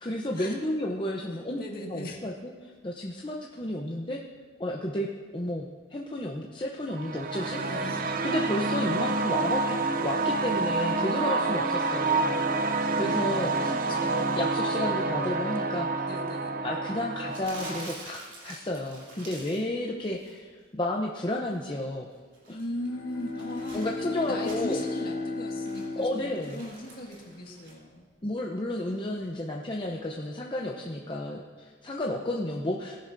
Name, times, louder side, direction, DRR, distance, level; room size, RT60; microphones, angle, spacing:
voice 1, 0.0-1.6 1.9-2.3 2.8-4.2 4.6-5.1 5.3-7.6 8.2-13.7 14.4-16.1 16.6-18.2 18.4-22.1 22.5-22.6 23.7-24.8 26.0-26.6 28.2-33.0, left 1 dB, 25° left, -1 dB, 0.7 m, -32 dB
voice 2, 1.3-2.2 7.5-8.0 13.0-14.6 16.0-16.5 22.5-23.8 24.1-28.1, left 1 dB, 45° left, -1 dB, 1.8 m, -39 dB
sound 1, 6.9-17.9, right 3 dB, 45° right, 0.5 m, -28 dB
Crumpling crinkling, 17.3-19.7 20.0-20.4 22.1-25.0 25.4-27.7, right 2 dB, 60° right, 3.5 m, -47 dB
Bowed string instrument, 22.6-27.0, left 3 dB, 80° left, 1.7 m, -35 dB
18.5 x 11.0 x 2.6 m, 1.5 s
head